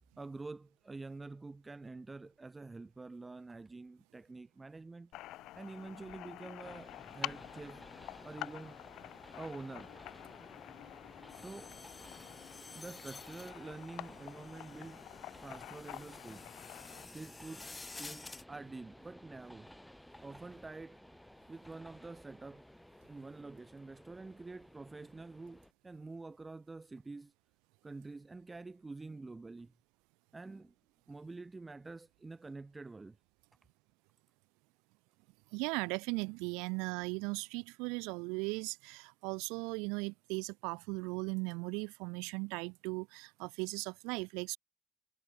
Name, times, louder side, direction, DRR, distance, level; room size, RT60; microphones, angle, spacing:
voice 1, 0.2-5.1 5.5-7.8 8.2-8.8 9.3-9.9 11.3-11.7 12.3-12.4 12.7-15.1 15.4-16.5 17.1-19.7 20.2-21.0 21.5-22.7 23.1-27.3 27.8-29.7 30.3-30.7 31.1-33.2, right 3 dB, 25° right, 0.5 m, -47 dB
sound 1, 5.1-17.1, left 15 dB, 75° left, 0.5 m, -48 dB
Train, 6.6-25.7, left 1 dB, 5° left, 4.2 m, -56 dB
sound 2, 11.3-18.4, left 3 dB, 25° left, 1.3 m, -52 dB
voice 2, 35.5-44.6, right 30 dB, 85° right, 0.6 m, -38 dB
supercardioid pair, 65°, 0 cm